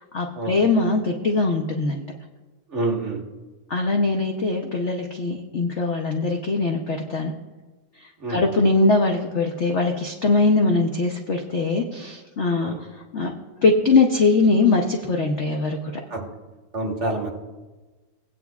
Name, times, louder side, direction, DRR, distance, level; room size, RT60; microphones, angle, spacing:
voice 1, 0.1-2.0 3.7-7.3 8.0-13.3 13.6-15.9, left 3 dB, 65° left, 2 dB, 0.7 m, -21 dB
voice 2, 2.7-3.2 8.2-8.4 12.6-12.8 16.1-16.3 16.7-17.3, right 2 dB, 40° right, 0 dB, 1.5 m, -27 dB
17.5 x 9.2 x 2.3 m, 1.2 s
omnidirectional pair, 2.1 m